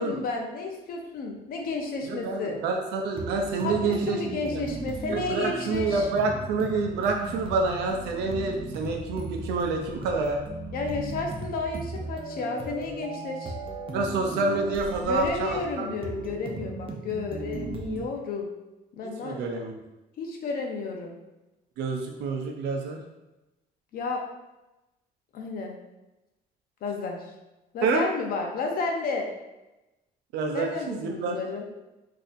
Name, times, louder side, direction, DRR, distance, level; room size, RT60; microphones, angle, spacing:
voice 1, 0.0-2.6 3.6-6.1 10.7-13.6 15.0-18.5 19.0-19.4 20.2-21.2 23.9-24.2 25.3-25.8 26.8-27.3 27.7-29.3 30.5-31.7, left 3 dB, 60° left, 2 dB, 0.7 m, -32 dB
voice 2, 2.0-4.2 4.5-4.6 5.1-10.4 13.9-15.6 19.2-19.8 21.8-23.0 27.8-28.0 30.3-31.4, right 3 dB, 85° right, 2 dB, 0.6 m, -27 dB
sound 1, 3.1-18.1, right 3 dB, 30° right, 0.6 m, -37 dB
4.0 x 2.7 x 2.6 m, 1.0 s
cardioid pair, 110°, 17 cm